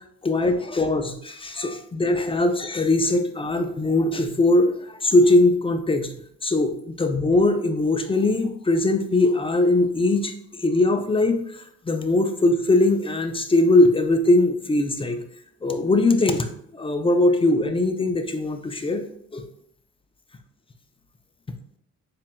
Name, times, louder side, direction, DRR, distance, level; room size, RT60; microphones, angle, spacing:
voice 1, 0.2-6.1 6.4-15.2 15.6-19.0 19.3-19.5, left 2 dB, 20° left, 6 dB, 0.4 m, -21 dB
7.1 x 2.5 x 2.2 m, 0.69 s
cardioid pair, 90°, 30 cm